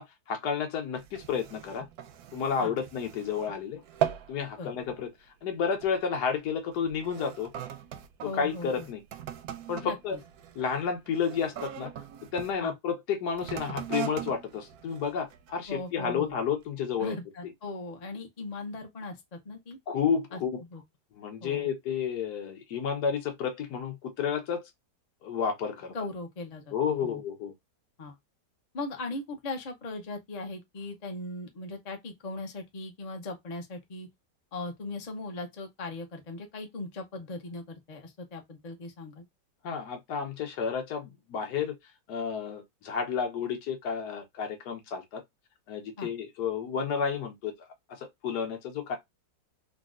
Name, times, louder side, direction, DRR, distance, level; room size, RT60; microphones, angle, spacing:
voice 1, 0.0-1.8 2.3-5.1 5.4-7.5 8.3-9.0 9.7-10.2 10.5-11.9 12.3-17.2 19.9-20.6 21.1-24.6 25.2-25.9 26.7-27.5 39.6-41.7 42.1-45.2 45.7-47.5 47.9-49.0, left 6 dB, 65° left, 1.5 m, -31 dB
sound 1, 1.0-3.6 3.8-4.4 4.8-5.1 5.8-6.0 6.7-12.5 13.3-15.7 16.3-16.4, right 10 dB, 70° right, 1.0 m, -39 dB
voice 2, 8.2-8.9 9.8-10.2 12.6-12.7 15.7-16.3 17.0-19.8 20.3-20.8 21.4-21.7 25.9-27.2 28.0-28.2 28.7-34.1 34.5-39.3 46.0-46.1, left 2 dB, 40° left, 0.5 m, -39 dB
3.8 x 2.3 x 2.4 m
omnidirectional pair, 1.9 m